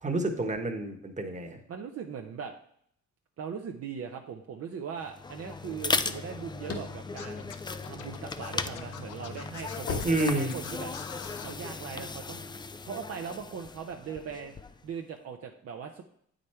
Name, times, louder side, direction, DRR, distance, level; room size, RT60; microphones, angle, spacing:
voice 1, 0.0-1.6 10.0-10.6, right 2 dB, 25° right, 4 dB, 1.3 m, -29 dB
voice 2, 1.7-2.5 3.4-7.5 7.8-10.9 11.4-12.5 12.9-14.5 14.8-16.0, right 7 dB, 55° right, 3 dB, 0.7 m, -40 dB
sound 1, 5.0-14.9, left 4 dB, 15° left, 0.4 m, -37 dB
sound 2, 6.5-8.3 8.8-11.0, left 4 dB, 50° left, 1.4 m, -38 dB
Scratching (performance technique), 7.2-11.5, left 9 dB, 80° left, 0.8 m, -45 dB
8.3 x 5.2 x 4.4 m, 0.67 s
cardioid pair, 90°, 30 cm